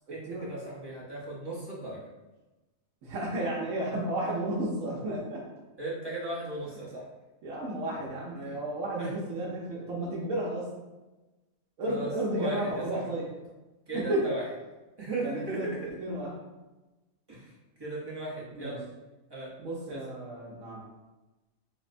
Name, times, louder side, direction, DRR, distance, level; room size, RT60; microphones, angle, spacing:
voice 1, 0.1-2.1 5.8-7.1 8.4-8.6 9.0-9.1 11.9-12.1 12.4-13.0 13.9-14.4 15.0-15.8 17.3-17.5 17.8-18.9 19.3-19.5 19.9-20.0, right 2 dB, 30° right, -6 dB, 0.5 m, -37 dB
voice 2, 3.0-5.4 6.7-6.8 7.4-10.7 11.8-13.2 13.9-14.2 15.2-16.3 18.5-18.8 19.6-20.8, right 1 dB, 75° right, -6 dB, 1.0 m, -32 dB
4.0 x 2.1 x 2.5 m, 1.1 s
omnidirectional pair, 1.4 m